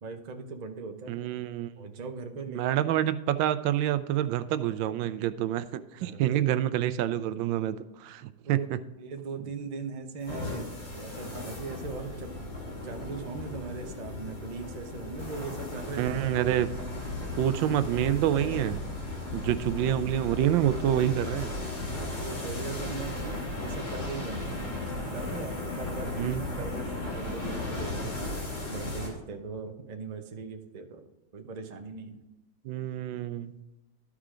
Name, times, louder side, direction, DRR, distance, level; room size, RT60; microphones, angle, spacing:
voice 1, 0.0-1.2 1.8-2.8 6.0-6.4 8.4-8.7 9.0-16.2 21.9-24.7 25.1-28.1 28.7-31.0 31.3-32.2, right 4 dB, 50° right, 4 dB, 0.5 m, -39 dB
voice 2, 1.1-1.7 2.5-8.8 16.0-16.7 17.4-18.8 19.3-21.5 26.2-26.4 32.6-33.6, right 11 dB, 90° right, 13 dB, 1.3 m, -27 dB
sound 1, 10.2-29.1, left 2 dB, 75° left, 3.3 m, -36 dB
12.5 x 4.9 x 3.7 m, 1.0 s
omnidirectional pair, 2.0 m